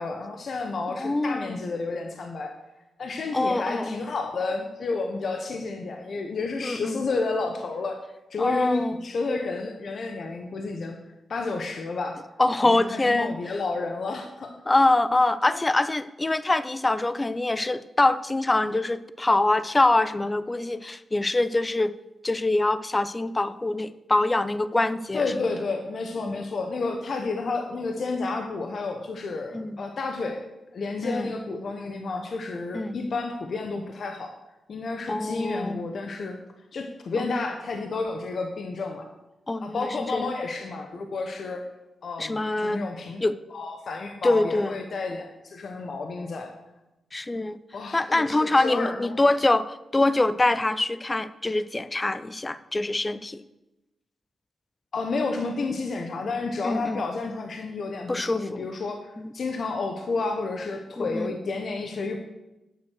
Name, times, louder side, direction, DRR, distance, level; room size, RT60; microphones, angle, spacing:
voice 1, 0.0-2.6 3.0-8.0 8.3-11.0 11.3-12.2 12.6-14.5 15.5-15.7 25.1-34.4 34.7-36.4 36.7-39.1 39.6-41.7 42.0-43.2 43.5-46.5 47.7-49.2 54.9-62.2, left 3 dB, 65° left, 5 dB, 1.1 m, -31 dB
voice 2, 0.9-1.6 3.3-4.0 6.6-7.0 8.4-9.0 12.4-13.3 14.7-21.9 22.2-25.3 26.3-26.4 29.5-29.8 31.0-31.3 32.7-33.0 35.1-35.8 37.2-37.3 39.5-40.3 42.2-42.8 43.2-43.3 44.2-44.8 47.1-47.6 47.9-53.4 56.6-57.0 58.1-58.6 61.0-61.3, left 2 dB, 25° left, 15 dB, 0.6 m, -24 dB
9.3 x 6.4 x 6.4 m, 0.96 s
cardioid pair, 55°, 0 cm